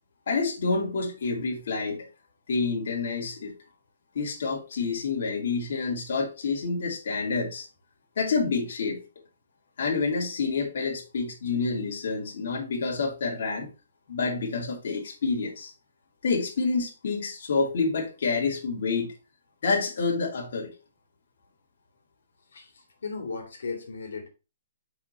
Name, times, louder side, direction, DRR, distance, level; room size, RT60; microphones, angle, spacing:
voice 1, 0.3-2.1 2.5-3.5 4.1-7.7 8.2-9.0 9.8-13.7 14.1-15.7 16.2-19.1 19.6-20.7, left 4 dB, 55° left, 2.8 m, -28 dB
voice 2, 22.5-24.3, left 4 dB, 85° left, 2.4 m, -36 dB
7.5 x 5.0 x 2.9 m
hypercardioid pair, 175°, 0 cm